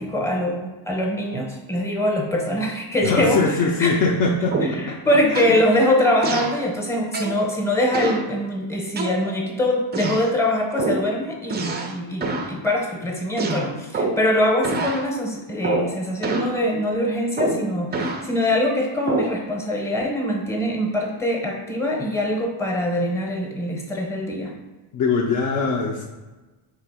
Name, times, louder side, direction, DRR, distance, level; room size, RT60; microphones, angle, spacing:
voice 1, 0.0-4.1 4.7-24.5, left 1 dB, 5° left, 0 dB, 0.7 m, -23 dB
voice 2, 3.0-5.4 24.9-26.1, left 4 dB, 45° left, -1 dB, 0.5 m, -22 dB
sound 1, 4.5-4.9 5.3-5.6 6.2-6.6 7.1-7.4 7.9-8.3 9.0-9.5 9.9-10.3 10.8-11.1 11.5-12.0 12.2-12.5 13.4-14.3 14.6-15.0 15.6-15.9 16.2-16.6 17.4-18.3 19.1-19.4, right 2 dB, 25° right, 0.3 m, -26 dB
3.4 x 2.9 x 4.7 m, 1.2 s
cardioid pair, 130°, 47 cm